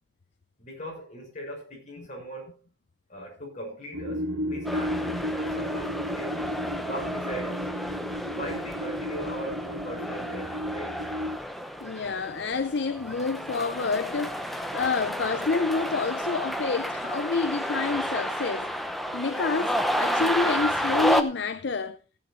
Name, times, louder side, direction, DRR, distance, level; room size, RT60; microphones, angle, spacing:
voice 1, 0.6-2.6 3.1-6.5 6.8-7.7 8.3-11.0, equal, 35° left, 6.1 m, -39 dB
sound 1, 3.9-11.4, equal, 80° right, 2.1 m, -33 dB
sound 2, 4.6-21.2, equal, ahead, 0.8 m, -31 dB
voice 2, 11.8-18.7 19.1-22.0, left 4 dB, 55° left, 0.6 m, -28 dB
16.0 x 8.4 x 4.1 m
head